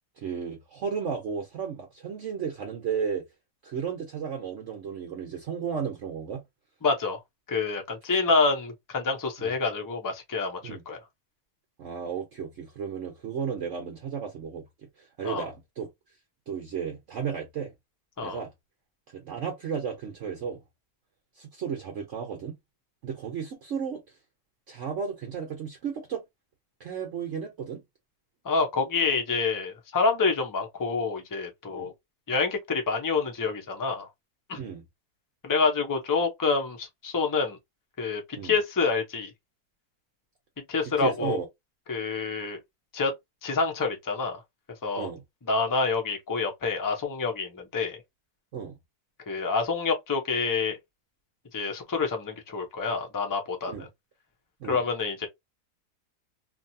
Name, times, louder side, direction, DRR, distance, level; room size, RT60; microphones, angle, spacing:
voice 1, 0.2-3.2 3.6-6.4 9.4-9.5 10.6-10.8 11.8-14.6 15.0-15.9 16.5-17.7 18.2-18.5 19.1-20.6 21.4-22.6 23.0-24.0 24.7-26.2 26.8-27.8 31.7-31.9 34.6-34.8 38.4-38.5 40.8-41.5 45.0-45.2 48.5-48.8 53.7-53.9 54.6-54.8, right 7 dB, 55° right, 1.0 m, -34 dB
voice 2, 6.8-7.2 7.5-10.6 10.9-11.0 15.2-15.4 18.2-18.4 28.4-31.9 32.3-34.1 34.5-34.6 35.4-37.6 38.0-39.3 40.7-41.4 41.9-42.6 42.9-43.1 43.4-44.4 44.8-45.1 45.5-48.0 49.3-50.8 51.5-53.7 54.7-55.3, left 4 dB, 30° left, 0.4 m, -27 dB
2.8 x 2.6 x 2.6 m
omnidirectional pair, 1.7 m